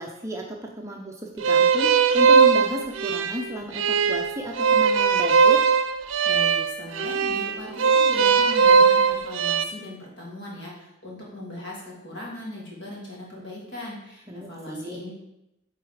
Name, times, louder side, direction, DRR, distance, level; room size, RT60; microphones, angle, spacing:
voice 1, 0.0-5.6 14.3-15.0, right 1 dB, 15° right, 0 dB, 0.6 m, -33 dB
sound 1, 1.4-9.6, right 5 dB, 70° right, 0.5 m, -19 dB
voice 2, 6.2-15.1, left 1 dB, 55° left, -4 dB, 2.5 m, -39 dB
8.0 x 4.0 x 4.9 m, 0.90 s
head